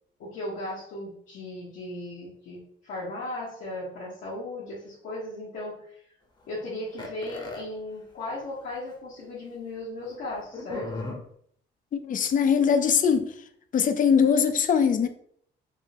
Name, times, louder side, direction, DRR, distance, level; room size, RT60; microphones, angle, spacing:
voice 1, 0.2-6.0 6.5-11.1, left 1 dB, 80° left, 1.1 m, -36 dB
sound 1, 7.0-7.6 8.6-8.7 8.9-9.0 10.5-11.2, left 3 dB, 25° left, 0.7 m, -35 dB
voice 2, 11.9-13.3 13.7-15.1, left 7 dB, 40° left, 0.4 m, -21 dB
3.5 x 2.1 x 2.8 m
cardioid pair, 90°, 20 cm